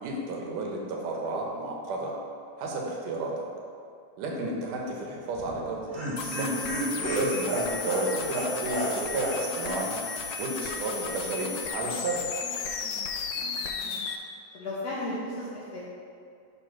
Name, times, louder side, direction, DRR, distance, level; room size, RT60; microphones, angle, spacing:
voice 1, 0.0-2.1 2.6-3.3 4.2-6.5 7.1-9.9 10.4-12.2, right 2 dB, 85° right, -1 dB, 2.6 m, -32 dB
Laughter, 5.3-9.4 9.6-9.8 10.1-10.2, right 1 dB, 25° right, 1.1 m, -31 dB
sound 1, 6.2-14.2, left 5 dB, 85° left, 1.5 m, -34 dB
voice 2, 13.3-14.0 14.5-16.0, left 1 dB, 65° left, -7 dB, 1.8 m, -36 dB
9.8 x 3.3 x 5.8 m, 2.4 s
omnidirectional pair, 3.7 m